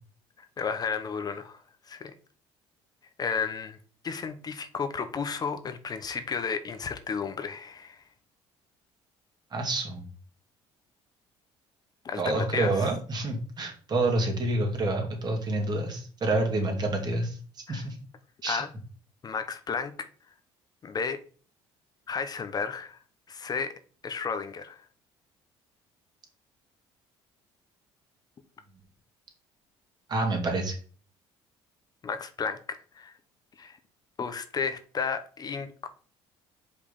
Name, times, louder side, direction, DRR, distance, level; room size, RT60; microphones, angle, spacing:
voice 1, 0.6-2.1 3.2-3.8 4.0-8.0 12.0-12.9 17.7-17.8 18.5-18.7 19.2-19.9 20.8-21.2 22.1-23.0 23.3-23.7 24.0-24.8 32.0-32.6 32.9-33.1 33.6-33.8 34.2-35.9, left 5 dB, 40° left, 0.8 m, -33 dB
voice 2, 9.5-10.0 12.2-17.4 17.7-18.0 18.4-18.6 30.1-30.8, right 2 dB, 40° right, 2.5 m, -28 dB
5.3 x 4.8 x 5.4 m
supercardioid pair, 85°, 11 cm